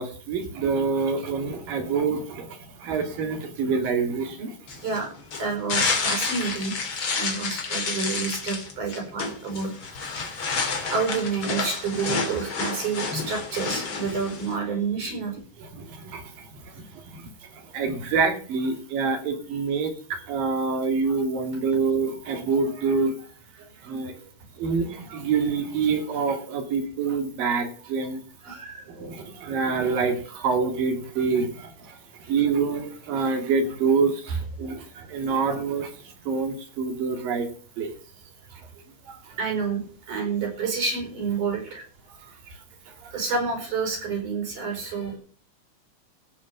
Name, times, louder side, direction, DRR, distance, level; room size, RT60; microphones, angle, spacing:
voice 1, 0.0-2.5 2.8-4.6 15.6-16.5 16.7-16.8 17.1-17.3 17.7-23.3 23.8-24.1 24.6-28.2 28.5-28.6 28.9-32.0 32.3-35.9 36.3-37.5 37.8-37.9 39.1-39.2 42.2-42.3, right 5 dB, 85° right, 6 dB, 4.0 m, -26 dB
sound 1, 4.7-14.6, left 4 dB, 40° left, 2.6 m, -29 dB
voice 2, 5.4-6.7 7.0-9.7 10.9-15.4 28.4-28.8 34.3-34.4 39.4-39.8 40.1-41.8 43.1-45.2, right 5 dB, 65° right, 3 dB, 6.4 m, -29 dB
16.0 x 6.6 x 7.0 m, 0.43 s
omnidirectional pair, 3.9 m